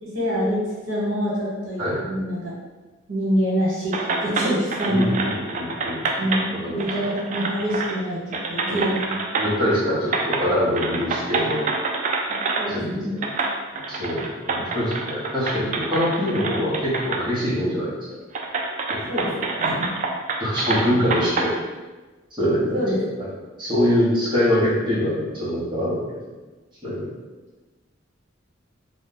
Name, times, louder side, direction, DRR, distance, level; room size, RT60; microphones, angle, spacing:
voice 1, 0.0-2.5 3.1-5.3 6.2-9.1 12.6-13.2 19.1-20.0 22.7-23.0, equal, 75° right, -6 dB, 1.2 m, -26 dB
sound 1, 3.9-6.5 6.8-8.0 8.3-9.7 10.1-10.5 10.7-12.7 13.2-17.2 17.6-17.7 18.3-21.5, right 3 dB, 40° right, 0.3 m, -27 dB
voice 2, 4.9-6.0 6.5-6.9 8.7-8.8 9.4-11.6 12.7-13.2 13.7-17.9 18.9-19.5 20.4-21.5 22.4-23.3 23.6-26.0 26.8-27.1, equal, 25° right, -9 dB, 0.9 m, -24 dB
2.7 x 2.3 x 3.8 m, 1.2 s
head